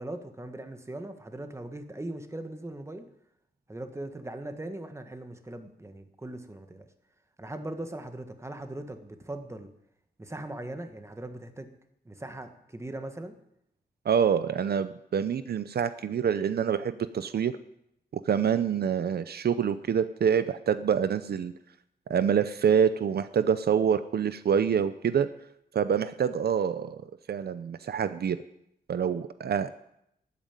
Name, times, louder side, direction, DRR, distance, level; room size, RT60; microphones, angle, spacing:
voice 1, 0.0-3.1 3.7-6.9 7.4-9.7 10.2-11.7 12.0-13.3, right 1 dB, 15° right, 7 dB, 1.5 m, -39 dB
voice 2, 14.0-17.5 18.1-21.5 22.1-25.3 25.7-28.4 28.9-29.7, right 7 dB, 70° right, 13 dB, 0.6 m, -26 dB
12.5 x 9.4 x 8.8 m, 0.79 s
wide cardioid pair, 100°, 17 cm